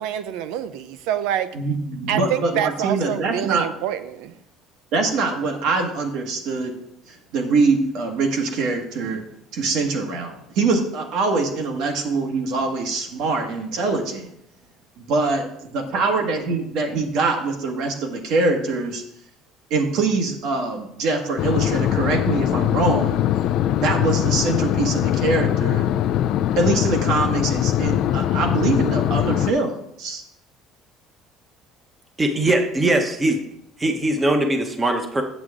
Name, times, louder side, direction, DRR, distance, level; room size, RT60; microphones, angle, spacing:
voice 1, 0.0-1.5 2.1-4.4, right 10 dB, 80° right, 12 dB, 0.6 m, -26 dB
voice 2, 1.5-3.7 4.9-6.8 7.1-9.2 9.5-14.3 15.0-19.0 19.7-23.2 23.8-25.9 26.6-30.2, right 3 dB, 60° right, 3 dB, 1.5 m, -23 dB
sound 1, 21.4-29.5, left 12 dB, 50° left, 0.3 m, -21 dB
voice 3, 32.2-33.3 33.8-35.2, right 1 dB, 15° right, 5 dB, 0.8 m, -20 dB
7.9 x 7.9 x 3.7 m, 0.75 s
cardioid pair, 175°, 0 cm